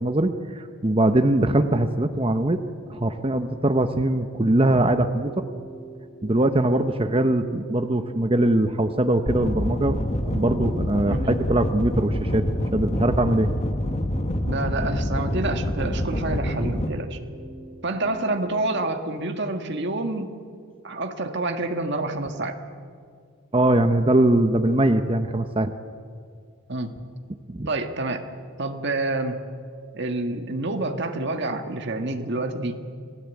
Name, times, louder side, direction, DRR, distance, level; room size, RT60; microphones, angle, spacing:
voice 1, 0.0-2.6 2.9-5.4 6.2-10.0 10.2-12.4 12.7-13.5 23.5-25.7 27.5-27.7, right 1 dB, 25° right, 7 dB, 0.8 m, -21 dB
sound 1, 2.7-18.8, right 1 dB, 10° left, 7.4 m, -45 dB
sound 2, 9.3-16.9, left 1 dB, 30° left, 1.3 m, -26 dB
voice 2, 11.1-11.4 14.5-17.2 17.8-20.3 20.8-22.6 26.7-26.9 27.6-28.2 28.6-29.4 29.9-32.8, right 2 dB, 50° right, 5 dB, 1.6 m, -28 dB
27.0 x 16.5 x 8.3 m, 2.2 s
head